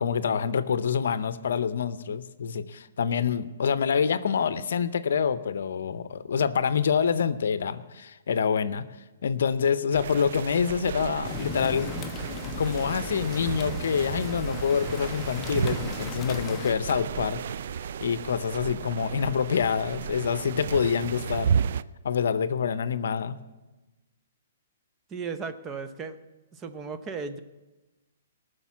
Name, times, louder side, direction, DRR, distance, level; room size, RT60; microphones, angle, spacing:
voice 1, 0.0-8.9 9.2-11.9 12.6-17.4 18.0-21.5 22.0-23.4, left 6 dB, 70° left, 15 dB, 0.6 m, -26 dB
sound 1, 9.9-21.8, right 7 dB, 60° right, 0.3 m, -33 dB
sound 2, 11.2-16.7, left 7 dB, 25° left, 0.6 m, -38 dB
voice 2, 25.1-26.2 26.5-27.4, right 5 dB, 20° right, 10 dB, 0.8 m, -35 dB
18.0 x 6.5 x 7.3 m, 1.1 s
hypercardioid pair, 130°, 0 cm